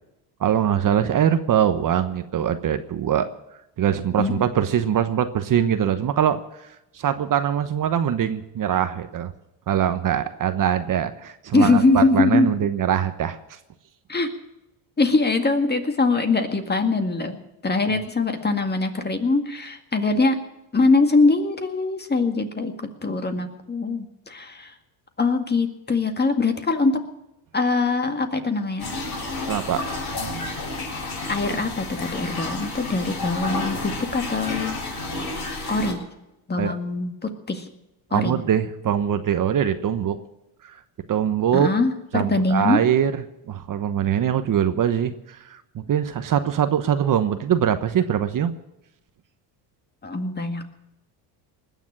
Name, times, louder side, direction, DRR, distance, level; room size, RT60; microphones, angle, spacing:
voice 1, 0.4-3.3 3.8-6.4 6.9-9.3 9.7-13.4 29.5-29.8 30.3-30.4 36.6-36.7 38.1-40.2 40.6-40.8 41.1-41.7 42.1-43.1 43.5-48.5, right 9 dB, 40° right, 10 dB, 1.1 m, -22 dB
voice 2, 11.5-12.5 14.1-14.3 15.0-20.4 20.7-22.7 23.0-24.7 25.2-27.0 27.5-28.9 31.3-34.8 35.7-36.0 36.5-37.7 38.1-38.4 41.5-42.8 50.0-50.8, left 3 dB, 20° left, 6 dB, 2.0 m, -22 dB
sound 1, 28.8-35.9, left 2 dB, 50° left, 6.7 m, -30 dB
20.0 x 7.3 x 9.9 m, 0.89 s
supercardioid pair, 90°, 48 cm